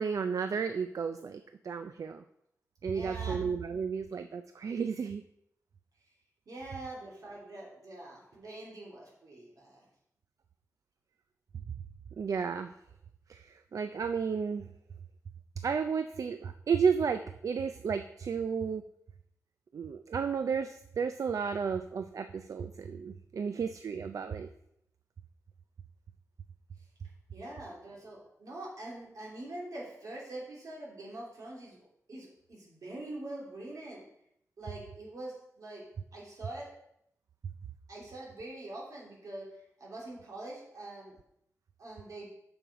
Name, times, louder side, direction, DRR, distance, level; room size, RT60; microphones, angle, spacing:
voice 1, 0.0-2.2 2.8-5.2 12.2-12.7 13.3-13.4 13.7-14.7 15.6-18.8 19.7-24.5, right 6 dB, 65° right, 9 dB, 0.4 m, -32 dB
voice 2, 2.9-3.4 6.5-9.8 27.3-31.8 32.1-34.0 34.6-35.8 36.1-36.7 37.9-39.5 39.8-41.2 41.8-42.3, right 1 dB, 85° right, -4 dB, 2.8 m, -44 dB
7.1 x 7.0 x 4.8 m, 0.76 s
wide cardioid pair, 155°, 6 cm